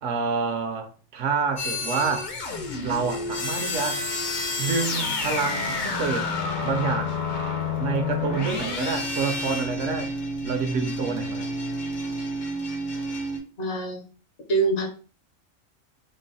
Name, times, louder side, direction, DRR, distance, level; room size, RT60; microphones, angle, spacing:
voice 1, 0.0-2.3 2.8-4.0 4.6-6.3 6.6-7.2 7.8-10.1 10.4-11.5, right 5 dB, 70° right, 0.9 m, -28 dB
sound 1, 1.6-13.4, left 2 dB, 45° left, 0.7 m, -29 dB
voice 2, 13.6-14.0 14.5-14.9, right 3 dB, 60° left, 1.1 m, -24 dB
3.8 x 2.0 x 3.9 m
omnidirectional pair, 1.4 m